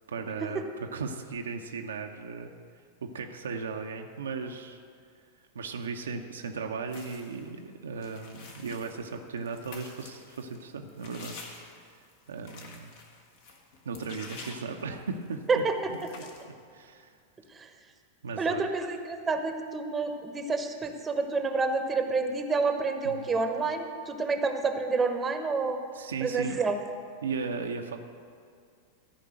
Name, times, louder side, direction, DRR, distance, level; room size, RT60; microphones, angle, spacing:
voice 1, 0.1-0.6 0.9-2.6 3.0-4.8 5.5-11.4 12.3-12.9 13.8-15.6 15.9-16.0 16.7-17.1 18.2-18.7 23.0-23.3 25.9-26.6 27.2-28.0, right 5 dB, 70° right, 4 dB, 0.7 m, -36 dB
sound 1, 6.9-7.5 8.0-15.3 15.6-15.7 15.9-16.4, left 4 dB, 50° left, 1.5 m, -48 dB
voice 2, 15.5-15.9 17.5-17.7 18.4-25.8 26.2-26.8, right 4 dB, 15° right, 6 dB, 1.0 m, -29 dB
14.0 x 5.3 x 7.8 m, 2.3 s
figure-of-eight pair, 90°, 0 cm